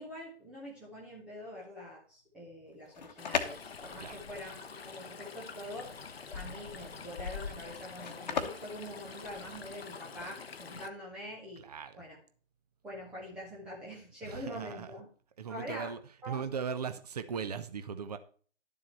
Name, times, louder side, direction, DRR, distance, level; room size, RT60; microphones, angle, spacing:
voice 1, 0.0-5.9 6.3-11.7 12.0-12.2 12.8-15.1 15.5-15.9 16.2-16.4, equal, 5° right, 0.6 m, -44 dB
sound 1, 2.7-9.8, left 6 dB, 40° left, 1.2 m, -39 dB
Stream, 3.2-10.9, left 5 dB, 60° left, 0.9 m, -45 dB
voice 2, 11.6-12.0 14.2-14.9 15.4-16.0 16.3-18.2, right 6 dB, 35° right, 0.9 m, -38 dB
11.5 x 7.5 x 4.3 m
figure-of-eight pair, 135°, 35 cm